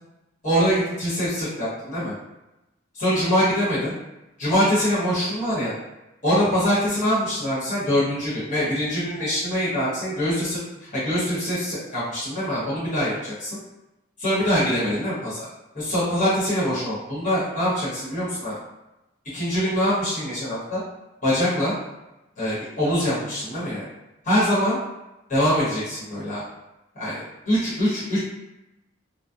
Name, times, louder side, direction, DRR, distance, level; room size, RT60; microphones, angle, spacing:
voice 1, 0.4-2.1 2.9-3.9 4.4-5.7 6.2-10.6 10.9-13.6 14.2-15.5 15.7-18.6 19.3-20.8 21.2-21.7 22.4-23.9 24.2-24.8 25.3-26.4 26.9-28.2, equal, 35° left, -11 dB, 0.9 m, -23 dB
2.6 x 2.0 x 2.3 m, 0.95 s
head